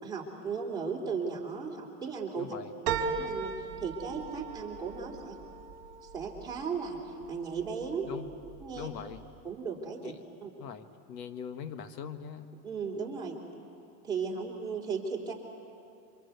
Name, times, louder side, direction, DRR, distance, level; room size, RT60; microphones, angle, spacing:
voice 1, 0.0-2.4 3.1-3.5 3.8-5.4 6.0-7.0 7.3-8.1 8.6-8.9 9.4-10.1 10.4-10.5 12.6-13.4 14.0-15.3, right 5 dB, 10° right, -4 dB, 3.8 m, -36 dB
voice 2, 2.4-2.7 8.0-8.3 8.8-9.2 10.0-10.2 10.6-12.5, left 7 dB, 75° left, 9 dB, 1.5 m, -41 dB
sound 1, 2.9-7.6 8.1-8.8 9.2-9.3, right 6 dB, 40° right, 2.5 m, -37 dB
27.5 x 25.5 x 8.2 m, 2.6 s
supercardioid pair, 150°, 50 cm